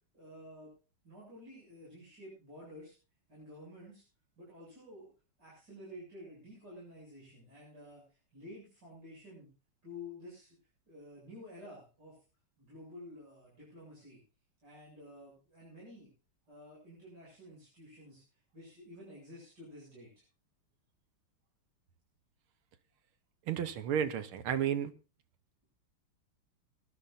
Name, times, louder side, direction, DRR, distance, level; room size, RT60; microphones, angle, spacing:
voice 1, 0.1-0.7 1.0-2.9 3.3-4.0 4.4-5.1 5.4-9.5 9.8-10.6 10.9-12.2 12.6-14.2 14.6-16.1 16.5-18.2 18.5-20.2, left 1 dB, 50° right, 8.6 m, -51 dB
voice 2, 23.5-24.9, right 9 dB, 85° right, 1.8 m, -32 dB
22.5 x 12.5 x 2.6 m
omnidirectional pair, 2.3 m